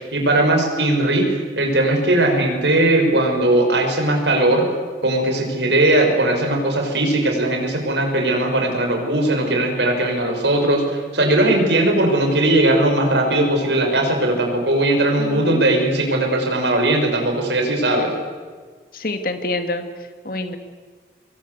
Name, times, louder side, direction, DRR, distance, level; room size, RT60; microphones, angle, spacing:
voice 1, 0.1-4.6 5.0-18.1, right 1 dB, 85° right, 3 dB, 6.3 m, -19 dB
voice 2, 15.2-15.7 18.9-19.9 20.2-20.6, left 2 dB, 50° left, 7 dB, 2.2 m, -26 dB
26.0 x 22.5 x 8.1 m, 1.5 s
head